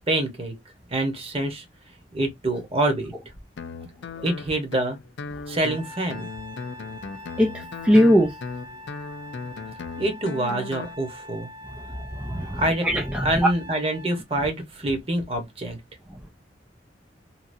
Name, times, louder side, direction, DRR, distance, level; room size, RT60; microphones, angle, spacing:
voice 1, 0.1-0.5 0.9-1.7 2.1-3.1 4.2-5.0 5.5-6.3 10.0-11.5 12.6-12.9 13.2-15.8, right 1 dB, 35° right, 1.1 m, -26 dB
Guitar, 3.6-10.9, left 4 dB, 90° left, 0.4 m, -37 dB
Trumpet, 5.6-14.2, left 1 dB, 75° right, 1.5 m, -43 dB
voice 2, 7.4-8.4 11.7-13.5, equal, 5° right, 0.4 m, -21 dB
2.9 x 2.7 x 2.6 m
head